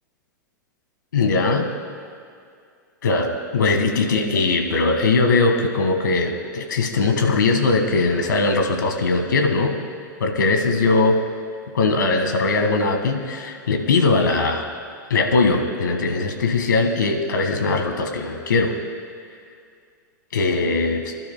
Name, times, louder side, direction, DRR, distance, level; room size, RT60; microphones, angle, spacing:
voice 1, 1.1-1.7 3.0-9.8 10.2-11.2 11.7-14.7 15.1-18.8 20.3-21.0, left 3 dB, 75° left, 5 dB, 1.7 m, -20 dB
26.5 x 12.0 x 2.2 m, 2.3 s
hypercardioid pair, 100°, 10 cm